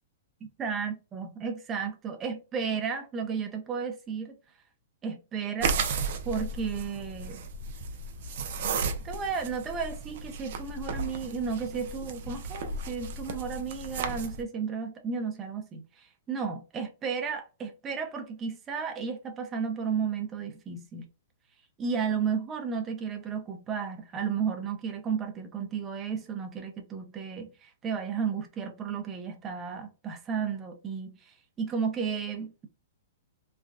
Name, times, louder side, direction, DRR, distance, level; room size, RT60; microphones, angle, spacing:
voice 1, 0.6-4.4 5.0-5.8 6.3-7.4 9.0-21.1 21.8-32.7, right 6 dB, 20° right, 0.7 m, -33 dB
sound 1, 5.6-14.4, right 4 dB, 55° right, 0.6 m, -34 dB
3.3 x 2.3 x 2.3 m
hypercardioid pair, 145°, 0 cm